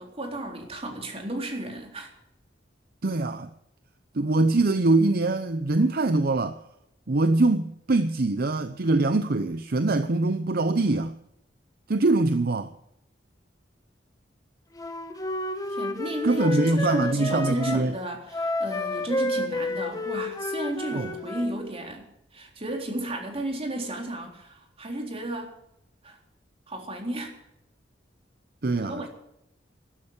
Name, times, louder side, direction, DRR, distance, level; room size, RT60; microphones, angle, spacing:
voice 1, 0.0-2.1 15.7-22.1 22.3-25.5 26.0-26.2 26.7-27.4 28.8-29.1, right 1 dB, 35° right, 3.8 m, -33 dB
voice 2, 3.0-3.5 4.1-6.6 7.1-11.1 11.9-12.7 16.2-17.9 20.9-21.1 28.6-29.1, right 2 dB, 55° right, 0.8 m, -23 dB
Wind instrument woodwind instrument, 14.8-17.8 18.3-21.6, left 2 dB, 20° left, 1.6 m, -30 dB
13.0 x 12.5 x 7.3 m
head